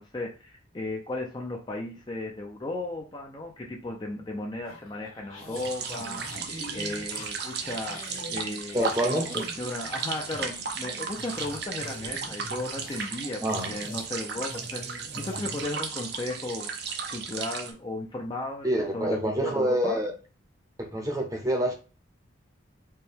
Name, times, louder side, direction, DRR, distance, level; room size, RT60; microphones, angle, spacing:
voice 1, 0.0-8.0 8.3-13.4 13.7-16.7 17.1-18.7 18.9-20.0, left 2 dB, 20° left, 1 dB, 0.4 m, -35 dB
sound 1, 4.6-15.7, left 1 dB, 90° left, 1.4 m, -44 dB
sound 2, 5.6-17.7, right 6 dB, 50° right, 0.5 m, -35 dB
voice 2, 8.7-9.4 13.4-13.7 18.6-20.1 20.8-21.7, right 1 dB, 15° right, 2 dB, 0.7 m, -27 dB
4.4 x 2.2 x 3.4 m, 0.34 s
head